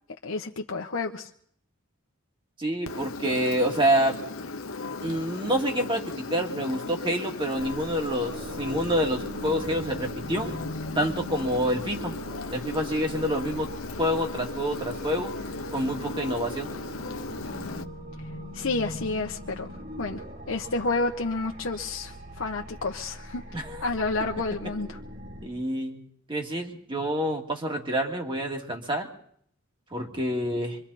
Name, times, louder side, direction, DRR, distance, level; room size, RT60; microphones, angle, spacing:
voice 1, 0.2-1.3 18.5-19.7 20.0-23.4 23.8-25.0, left 3 dB, 65° left, 2 dB, 1.1 m, -30 dB
voice 2, 2.6-4.2 5.0-10.5 11.0-12.2 12.5-13.7 14.0-15.3 15.7-16.7 23.5-23.8 25.4-26.0 26.3-29.1 29.9-30.8, equal, 25° right, 1 dB, 2.6 m, -27 dB
Engine, 2.9-17.8, left 3 dB, 85° left, 1.0 m, -37 dB
sound 1, 7.6-25.5, equal, 50° right, 3.7 m, -41 dB
25.5 x 24.5 x 4.3 m, 0.64 s
head